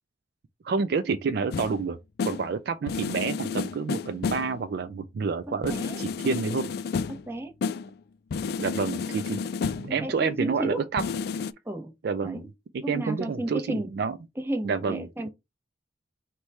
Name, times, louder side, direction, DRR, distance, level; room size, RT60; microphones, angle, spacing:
voice 1, 0.6-6.7 8.6-9.4 9.7-11.0 12.0-12.5 12.7-14.2 14.6-15.1, right 5 dB, 55° right, 0.3 m, -29 dB
sound 1, 1.5-1.8 2.2-2.5 2.9-4.6 5.6-7.4 7.6-7.9 8.3-10.0 11.0-11.5, left 5 dB, 55° left, 0.3 m, -31 dB
voice 2, 5.5-6.0 7.1-7.5 9.9-10.8 11.6-11.9 12.2-12.5 12.8-13.9 14.4-15.3, right 1 dB, 15° right, 0.8 m, -33 dB
4.6 x 2.2 x 4.1 m
head